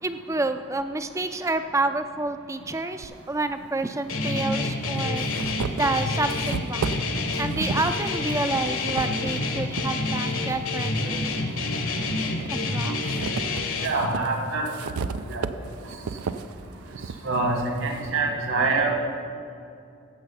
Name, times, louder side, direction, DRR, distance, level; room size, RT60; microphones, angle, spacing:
voice 1, 0.0-5.3 5.7-6.8 7.4-11.4 12.5-13.0 15.3-15.4 18.0-18.1, right 2 dB, 15° right, 9 dB, 0.4 m, -29 dB
sound 1, 3.0-3.1 4.2-4.3 4.8-9.9 10.4-11.6 12.1-18.2, right 5 dB, 85° right, 0.5 m, -34 dB
Guitar, 4.1-13.9, left 2 dB, 65° left, 1.2 m, -28 dB
voice 2, 13.8-14.6 15.3-15.4 17.2-18.9, right 3 dB, 60° right, 2 dB, 1.6 m, -25 dB
15.0 x 6.8 x 5.5 m, 2.5 s
head